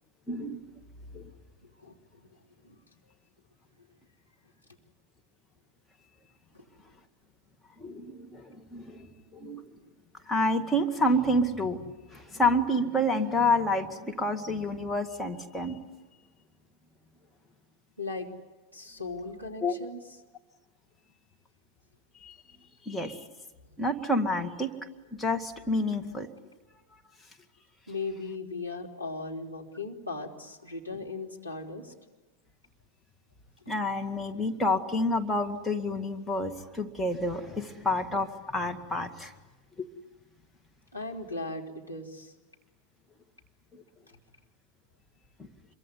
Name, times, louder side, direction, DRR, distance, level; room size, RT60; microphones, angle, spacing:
voice 1, 0.3-0.7 1.1-1.2 7.8-9.7 10.3-11.8 12.1-15.8 19.6-19.8 22.2-22.4 22.8-23.2 23.8-24.7 25.1-26.3 33.7-39.3 39.8-39.9 43.7-43.8, left 1 dB, 10° left, 4 dB, 2.0 m, -29 dB
voice 2, 2.3-2.8 6.5-6.6 18.0-18.3 18.7-20.0 23.6-23.7 27.9-31.9 40.9-42.3, left 3 dB, 90° left, -2 dB, 3.0 m, -38 dB
26.5 x 23.0 x 9.7 m, 1.2 s
figure-of-eight pair, 90°, 0 cm